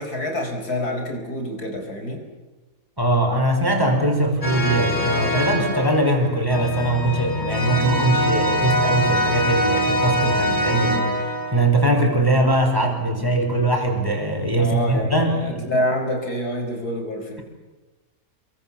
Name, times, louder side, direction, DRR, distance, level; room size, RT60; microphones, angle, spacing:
voice 1, 0.0-2.2 14.6-17.4, left 1 dB, 90° left, 4 dB, 5.3 m, -27 dB
voice 2, 3.0-11.1 11.5-15.7, right 1 dB, 15° right, 2 dB, 5.0 m, -21 dB
sound 1, 4.4-11.7, left 1 dB, 30° left, 4.4 m, -23 dB
27.5 x 23.5 x 7.1 m, 1.2 s
omnidirectional pair, 1.6 m